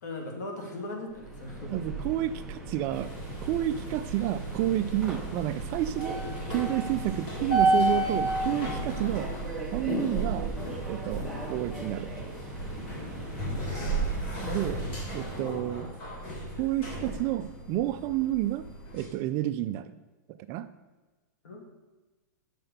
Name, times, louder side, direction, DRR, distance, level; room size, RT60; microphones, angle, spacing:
voice 1, 0.0-1.7 13.6-13.8 21.4-21.8, left 2 dB, 65° left, 2 dB, 2.3 m, -39 dB
Subway metro underground, 1.1-15.5, right 4 dB, 5° right, 1.1 m, -37 dB
voice 2, 1.7-3.1 3.4-6.2 6.5-9.3 9.7-10.5 10.9-12.3 14.4-14.8 15.1-15.9 16.6-18.7 18.9-19.9 20.3-20.7, right 13 dB, 30° right, 12 dB, 0.3 m, -30 dB
sound 1, 2.9-19.1, right 1 dB, 40° left, 3.0 m, -33 dB
6.9 x 6.0 x 6.7 m, 1.2 s
hypercardioid pair, 155°, 10 cm